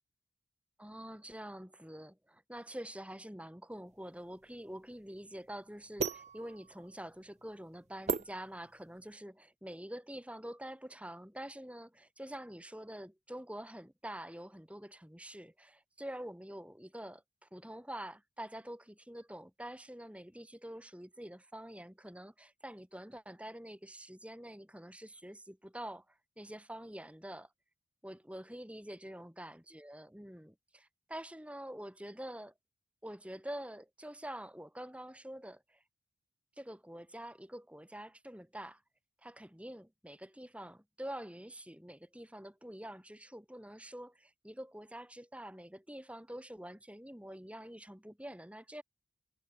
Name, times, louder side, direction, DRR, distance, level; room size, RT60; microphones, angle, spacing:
voice 1, 0.8-27.5 28.0-32.5 33.0-35.8 36.6-38.8 39.2-48.8, right 1 dB, 5° right, 3.8 m, -46 dB
sound 1, 3.9-9.1, right 4 dB, 30° right, 0.6 m, -40 dB
head